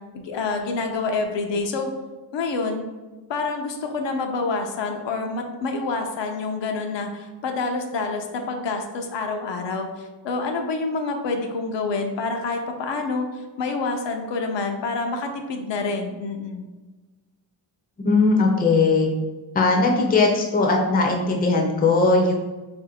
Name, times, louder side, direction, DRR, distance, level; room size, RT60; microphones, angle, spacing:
voice 1, 0.1-1.9 2.3-2.9 3.3-13.3 13.6-16.6, left 3 dB, 75° left, 4 dB, 0.6 m, -27 dB
voice 2, 18.0-19.1 19.5-22.3, left 3 dB, 20° left, 0 dB, 0.4 m, -19 dB
2.9 x 2.6 x 4.1 m, 1.2 s
wide cardioid pair, 165°, 44 cm